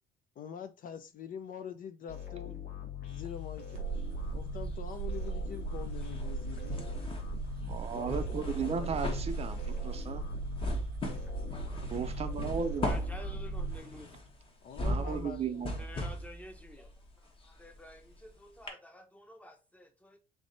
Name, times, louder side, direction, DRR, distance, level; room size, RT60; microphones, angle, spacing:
voice 1, 0.4-2.6 3.0-3.9 4.3-6.9 7.9-9.2 14.6-15.9, left 7 dB, 55° left, 0.6 m, -45 dB
sound 1, 2.1-14.3, left 9 dB, 90° left, 1.6 m, -43 dB
sound 2, 3.1-4.2 4.5-18.3 18.7-18.8, left 1 dB, 30° left, 1.2 m, -39 dB
sound 3, 3.7-13.8, right 7 dB, 85° right, 0.5 m, -39 dB
voice 2, 7.6-10.3 11.4-11.5 11.9-13.0 14.8-15.8, right 6 dB, 35° right, 0.5 m, -36 dB
voice 3, 12.8-14.1 15.8-20.2, equal, 10° left, 0.8 m, -50 dB
3.5 x 3.2 x 3.9 m
cardioid pair, 110°, 17 cm